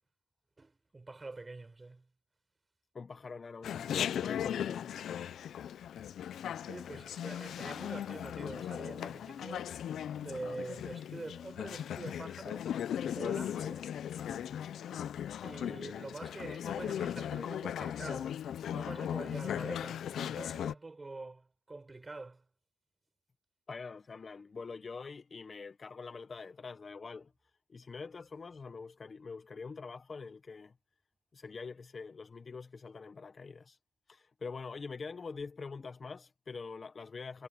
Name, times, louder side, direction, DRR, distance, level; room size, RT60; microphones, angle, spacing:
voice 1, 0.6-2.1 6.7-9.8 10.2-12.7 13.0-13.9 15.4-18.4 18.7-22.4, right 3 dB, 20° right, 7.2 m, -45 dB
voice 2, 2.9-4.9 23.7-27.3 27.7-30.7 31.3-33.8 34.1-37.5, left 4 dB, 35° left, 0.9 m, -44 dB
Chatter, 3.6-20.7, left 9 dB, 65° left, 0.6 m, -38 dB
cardioid pair, 90°, 0 cm